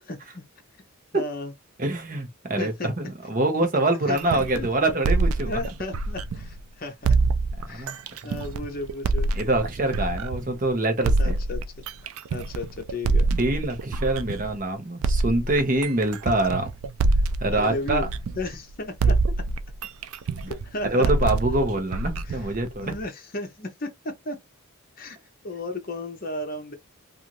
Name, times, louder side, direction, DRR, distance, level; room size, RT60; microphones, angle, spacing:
voice 1, 0.1-0.4 1.1-1.5 2.6-2.9 4.1-4.9 5.5-7.0 7.7-9.3 11.2-11.6 12.3-13.3 17.5-18.1 18.4-19.2 20.5-21.3 22.2-22.5 22.8-24.4 25.0-25.2 25.4-26.7, left 2 dB, 40° left, 0.7 m, -34 dB
voice 2, 1.8-5.6 7.7-8.0 9.3-11.4 13.4-16.7 17.4-18.1 20.9-22.9, right 2 dB, 40° right, 0.8 m, -25 dB
sound 1, 4.2-6.6 7.0-10.6 11.0-14.6 15.0-18.7 19.0-23.1, right 3 dB, 80° right, 0.4 m, -25 dB
2.5 x 2.5 x 2.9 m
head